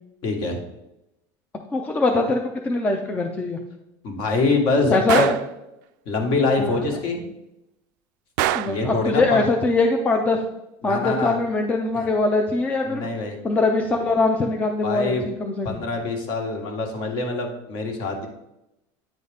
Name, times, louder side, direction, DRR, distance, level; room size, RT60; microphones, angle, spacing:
voice 1, 0.2-0.6 4.0-5.3 6.0-7.2 8.6-9.4 10.8-11.3 11.9-12.0 12.9-13.4 14.8-15.2 15.6-18.3, left 3 dB, 50° left, 3 dB, 1.4 m, -24 dB
voice 2, 1.7-3.6 4.9-5.2 6.6-6.9 8.5-10.4 10.8-13.1 13.4-15.8, left 3 dB, 15° left, 3 dB, 0.4 m, -22 dB
Gunshot gunfire, 5.1-5.5 8.4-8.9, right 14 dB, 80° right, 0.4 m, -24 dB
9.2 x 4.0 x 3.4 m, 0.89 s
cardioid pair, 165°, 10 cm